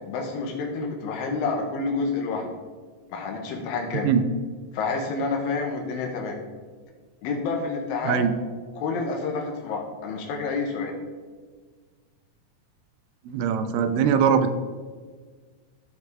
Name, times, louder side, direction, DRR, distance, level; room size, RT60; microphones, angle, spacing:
voice 1, 0.1-2.5 3.1-4.1 4.7-6.4 7.2-8.3 8.7-10.9, left 4 dB, 90° left, 1 dB, 2.7 m, -29 dB
voice 2, 13.3-14.5, right 7 dB, 85° right, 9 dB, 2.4 m, -21 dB
14.0 x 4.8 x 3.2 m, 1.5 s
omnidirectional pair, 4.0 m